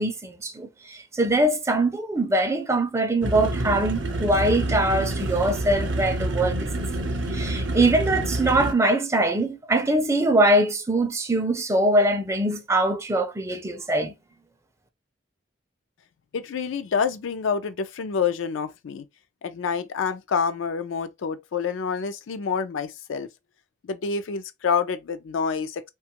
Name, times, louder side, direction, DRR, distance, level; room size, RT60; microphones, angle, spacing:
voice 1, 0.0-6.7 7.3-14.1, right 1 dB, 15° right, 0.4 m, -23 dB
sound 1, 3.2-8.7, right 1 dB, 75° right, 0.6 m, -27 dB
voice 2, 16.3-19.0 19.4-23.3 23.9-25.8, left 6 dB, 85° left, 0.4 m, -27 dB
2.8 x 2.3 x 2.8 m
head